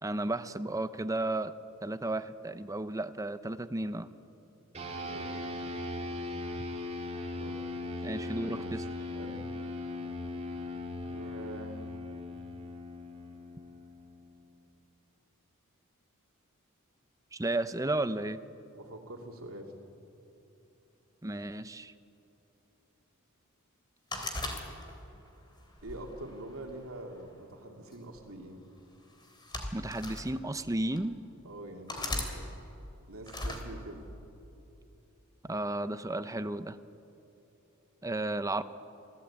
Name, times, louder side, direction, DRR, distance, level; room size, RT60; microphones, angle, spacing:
voice 1, 0.0-1.5 1.8-4.1 8.0-8.8 17.3-18.4 21.2-21.9 29.7-31.2 35.4-36.8 38.0-38.6, right 2 dB, 15° right, 12 dB, 0.7 m, -33 dB
sound 1, 4.7-14.5, left 2 dB, 30° right, 2.6 m, -39 dB
voice 2, 4.9-5.8 7.4-7.7 8.0-8.8 9.1-9.5 11.0-11.8 18.7-19.7 25.8-28.6 31.4-32.5 33.1-34.0, right 1 dB, 90° right, 1 dB, 2.5 m, -45 dB
sound 2, 24.1-25.2 25.8-27.0 27.9-28.2 29.2-30.3 31.0-31.1 31.9-32.3 33.3-33.6, left 2 dB, 20° left, 3.1 m, -37 dB
26.0 x 17.0 x 8.7 m, 3.0 s
head